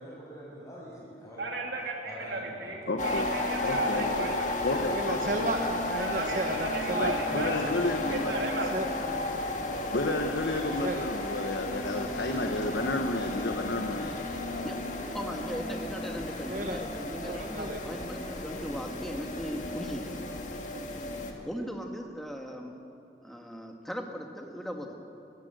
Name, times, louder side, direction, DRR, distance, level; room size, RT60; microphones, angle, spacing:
voice 1, 0.0-1.5 2.0-2.8, equal, 20° left, -5 dB, 6.7 m, -45 dB
voice 2, 1.4-4.9 6.0-7.6 8.1-8.8, right 2 dB, 85° right, 1 dB, 3.2 m, -35 dB
voice 3, 2.9-3.3 3.6-4.3 4.6-5.3 7.0-8.3 9.9-14.3, left 2 dB, 75° left, 4 dB, 1.3 m, -31 dB
sound 1, 3.0-21.3, left 2 dB, 45° left, 2.0 m, -34 dB
voice 4, 4.8-7.2 7.6-7.7 8.7-9.9 10.8-11.4 16.5-16.8 17.3-17.8, right 2 dB, 50° right, 4 dB, 1.0 m, -34 dB
voice 5, 15.1-20.2 21.4-22.7 23.2-24.9, equal, ahead, 2 dB, 1.7 m, -38 dB
21.5 x 16.0 x 7.9 m, 2.7 s
head